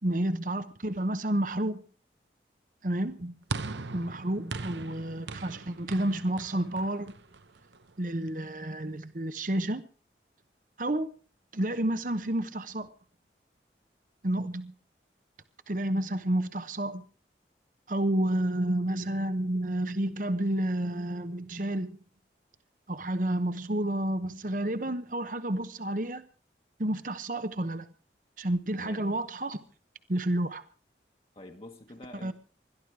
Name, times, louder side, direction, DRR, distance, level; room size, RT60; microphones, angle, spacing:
voice 1, 0.0-1.8 2.8-3.3 3.9-7.1 8.0-9.8 10.8-11.1 11.5-12.9 14.2-14.7 15.7-17.0 17.9-22.0 22.9-26.2 26.8-27.9 28.4-29.6 30.1-30.6 32.2-32.3, right 1 dB, 45° right, 1.0 m, -30 dB
sound 1, 3.5-7.9, right 3 dB, 85° right, 0.9 m, -40 dB
voice 2, 28.7-29.1 31.3-32.3, left 1 dB, 35° left, 1.4 m, -47 dB
21.5 x 13.0 x 4.7 m
head